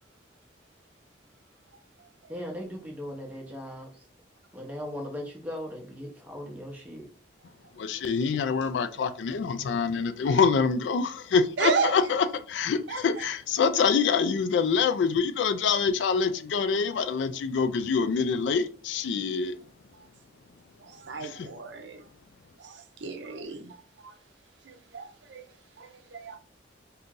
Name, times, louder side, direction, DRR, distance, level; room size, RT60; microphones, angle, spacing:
voice 1, 2.3-4.0 4.5-7.1, equal, 10° right, 0.7 m, -38 dB
voice 2, 7.8-19.6 21.2-21.5, left 5 dB, 70° left, 0.3 m, -26 dB
voice 3, 11.6-11.9 12.9-13.0 20.8-22.0 22.6-23.8 24.0-24.1 24.7-25.4 25.8-26.4, right 5 dB, 70° right, 0.5 m, -32 dB
2.8 x 2.5 x 3.6 m
head